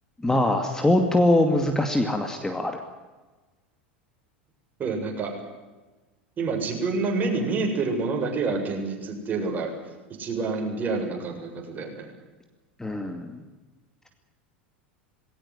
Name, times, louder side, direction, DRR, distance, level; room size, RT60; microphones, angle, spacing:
voice 1, 0.2-2.7 12.8-13.4, left 1 dB, 10° left, 5 dB, 2.4 m, -22 dB
voice 2, 4.8-5.3 6.4-9.7 10.2-12.1, right 4 dB, 30° right, 2 dB, 7.5 m, -28 dB
20.5 x 18.0 x 9.6 m, 1.2 s
hypercardioid pair, 90°, 6 cm